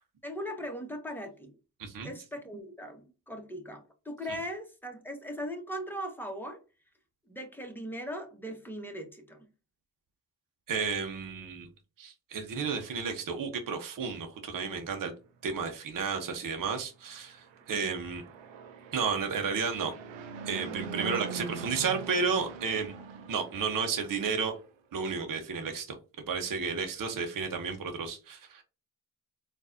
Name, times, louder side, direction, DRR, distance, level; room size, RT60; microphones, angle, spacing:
voice 1, 0.2-1.5 2.0-6.6 7.3-9.5 17.7-17.9 20.9-21.2, equal, 5° left, 1.3 m, -39 dB
voice 2, 1.8-2.1 10.7-11.7 12.0-15.1 15.4-18.2 18.9-19.9 20.4-22.9 23.3-24.5 24.9-26.0 26.3-28.6, right 5 dB, 45° right, 1.0 m, -32 dB
Fixed-wing aircraft airplane, 17.3-24.7, right 5 dB, 80° right, 0.7 m, -43 dB
3.8 x 2.6 x 2.6 m
supercardioid pair, 45°, 45 cm